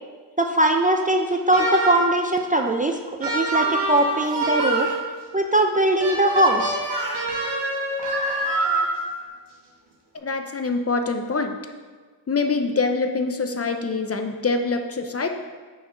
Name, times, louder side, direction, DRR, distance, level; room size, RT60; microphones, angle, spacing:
voice 1, 0.4-4.9 5.3-6.8, right 1 dB, 20° right, 3 dB, 0.4 m, -21 dB
sound 1, 1.5-2.2 3.2-5.0 6.0-9.2, right 2 dB, 70° right, 1.5 m, -26 dB
Speech, 4.0-5.0 6.4-6.6 6.9-7.3 8.0-8.8, right 2 dB, 50° right, 1.4 m, -31 dB
voice 2, 10.1-11.6 12.3-15.3, left 4 dB, 35° left, 6 dB, 0.6 m, -25 dB
4.6 x 4.4 x 5.7 m, 1.5 s
cardioid pair, 55°, 43 cm